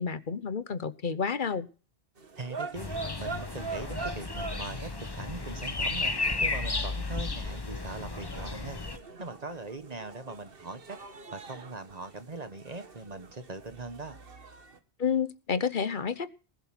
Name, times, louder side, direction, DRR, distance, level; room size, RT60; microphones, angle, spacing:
voice 1, 0.0-1.7 15.0-16.3, left 6 dB, 50° left, 14 dB, 1.1 m, -30 dB
sound 1, 2.2-14.8, right 4 dB, 60° right, 1.6 m, -44 dB
voice 2, 2.4-2.9 3.2-8.8 9.2-11.0 11.3-14.2, right 3 dB, 40° right, 10 dB, 1.3 m, -41 dB
sound 2, 2.7-9.0, left 3 dB, 25° left, 1.0 m, -33 dB
19.5 x 8.0 x 6.0 m, 0.36 s
omnidirectional pair, 1.1 m